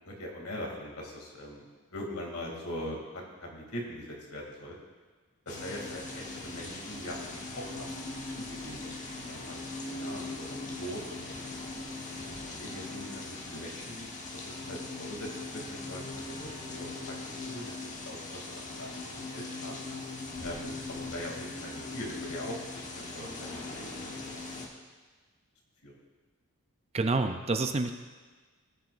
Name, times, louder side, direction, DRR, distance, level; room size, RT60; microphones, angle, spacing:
voice 1, 0.0-4.7 5.5-9.6 9.9-11.2 11.8-17.1 17.4-19.0 19.3-19.8 20.4-24.1 24.5-24.7 25.8-25.9, equal, 70° left, -1 dB, 2.5 m, -42 dB
sound 1, 5.5-24.7, left 2 dB, 35° left, 1.2 m, -40 dB
voice 2, 26.9-27.9, right 3 dB, 30° right, 7 dB, 0.5 m, -28 dB
17.0 x 9.2 x 2.5 m, 1.4 s
head